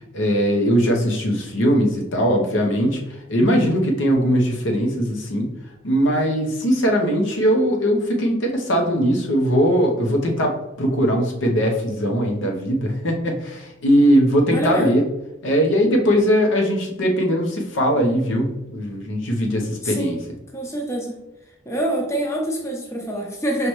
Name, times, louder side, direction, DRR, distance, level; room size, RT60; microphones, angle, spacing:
voice 1, 0.1-5.5 5.8-15.0 15.4-20.2, equal, 75° left, 1 dB, 0.8 m, -20 dB
voice 2, 14.5-14.9 19.8-20.2 20.5-21.1 21.7-23.7, right 1 dB, 15° left, 0 dB, 0.6 m, -26 dB
5.0 x 3.1 x 3.0 m, 0.94 s
head